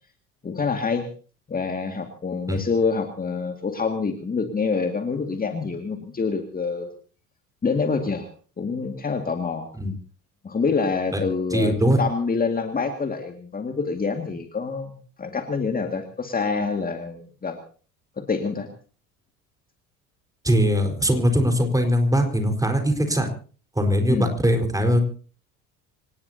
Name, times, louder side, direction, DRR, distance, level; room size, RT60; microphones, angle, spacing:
voice 1, 0.4-1.1 1.5-6.9 7.6-8.3 8.6-9.7 10.4-17.6 18.2-18.7 24.1-24.3, left 4 dB, 20° left, 5 dB, 2.1 m, -26 dB
voice 2, 11.5-12.0 20.4-23.3 23.8-25.0, equal, 10° right, 4 dB, 4.5 m, -21 dB
26.5 x 19.0 x 2.8 m, 0.40 s
figure-of-eight pair, 65°, 44 cm